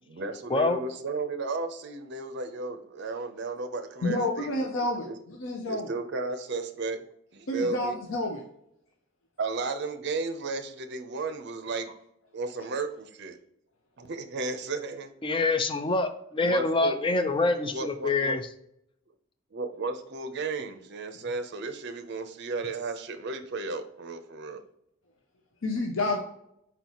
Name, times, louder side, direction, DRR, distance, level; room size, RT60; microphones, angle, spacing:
voice 1, 0.0-5.2 5.7-7.0 7.3-8.0 9.4-11.9 12.3-13.4 14.0-15.1 16.4-18.4 19.5-24.6, right 3 dB, 55° right, 8 dB, 0.6 m, -34 dB
voice 2, 0.5-0.8 15.2-18.4, left 3 dB, 25° left, 8 dB, 0.4 m, -26 dB
voice 3, 4.0-5.9 7.5-8.4 25.6-26.2, left 2 dB, 70° left, 2 dB, 0.6 m, -29 dB
4.5 x 4.0 x 2.9 m, 0.77 s
head